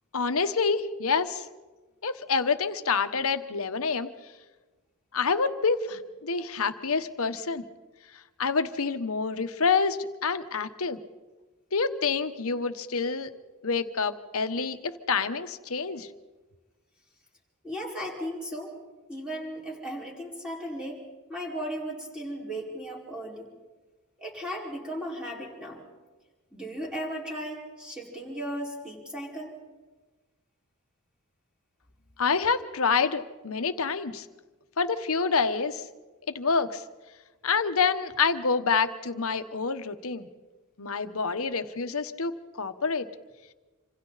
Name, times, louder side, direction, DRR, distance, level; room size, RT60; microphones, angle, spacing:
voice 1, 0.1-1.5 2.0-4.1 5.1-7.6 8.4-11.0 11.7-13.3 13.6-16.1 32.2-34.3 34.8-35.8 36.3-36.8 37.4-40.3 40.8-43.1, left 5 dB, 70° left, 9 dB, 1.1 m, -27 dB
voice 2, 17.6-18.7 19.1-21.0 21.3-23.5 24.2-25.8 26.5-29.6, equal, 5° right, -3 dB, 4.9 m, -36 dB
27.0 x 26.5 x 4.1 m, 1.3 s
head